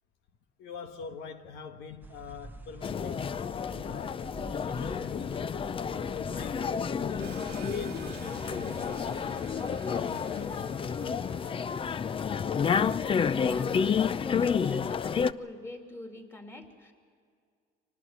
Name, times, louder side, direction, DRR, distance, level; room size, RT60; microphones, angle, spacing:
voice 1, 0.6-5.6 5.9-9.1 9.6-11.7, left 5 dB, 85° left, 1.5 m, -45 dB
sound 1, 2.0-9.8, right 2 dB, 10° right, 1.0 m, -49 dB
sound 2, 2.8-15.3, left 6 dB, 30° left, 0.5 m, -30 dB
sound 3, 7.2-13.4, right 10 dB, 70° right, 1.0 m, -49 dB
voice 2, 13.0-16.9, left 1 dB, 15° left, 3.0 m, -44 dB
25.0 x 19.0 x 8.0 m
cardioid pair, 110°, 17 cm